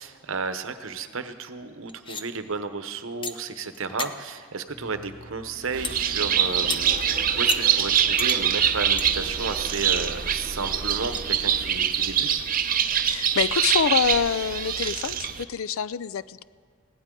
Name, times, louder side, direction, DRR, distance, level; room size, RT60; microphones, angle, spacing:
voice 1, 0.0-12.5, right 4 dB, 70° right, 9 dB, 0.9 m, -33 dB
sound 1, 1.9-2.2 3.2-3.3 3.7-4.1 5.8-6.0 6.7-6.8 7.5-7.6 8.2-8.4 9.0-9.1 9.5-9.6 10.3-10.4 10.9-11.2 12.9-13.0 13.5-13.7, left 5 dB, 25° left, 0.6 m, -33 dB
sound 2, 4.7-12.7, equal, 40° left, 2.6 m, -42 dB
Bird, 5.7-15.4, right 8 dB, 40° right, 0.6 m, -24 dB
voice 2, 13.0-16.4, left 7 dB, 75° left, 16 dB, 0.4 m, -26 dB
20.5 x 17.0 x 3.8 m, 2.1 s
head